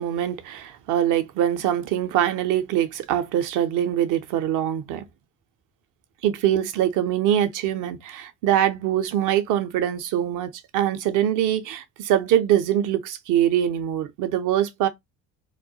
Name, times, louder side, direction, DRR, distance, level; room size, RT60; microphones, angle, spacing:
voice 1, 0.0-5.0 6.2-14.9, right 11 dB, 45° right, 0.5 m, -23 dB
2.2 x 2.1 x 2.7 m
figure-of-eight pair, 50°, 44 cm